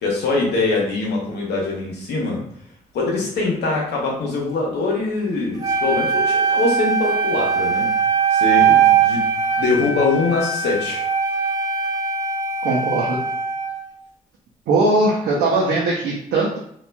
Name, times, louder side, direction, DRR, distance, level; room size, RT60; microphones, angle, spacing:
voice 1, 0.0-2.4 2.9-7.9 8.3-11.0, left 3 dB, 70° left, -2 dB, 0.9 m, -23 dB
Wind instrument woodwind instrument, 5.6-13.9, right 6 dB, 20° right, 0.7 m, -20 dB
voice 2, 12.6-13.2 14.7-16.6, right 2 dB, 75° right, -4 dB, 0.6 m, -19 dB
3.0 x 2.3 x 2.2 m, 0.69 s
hypercardioid pair, 45°, 18 cm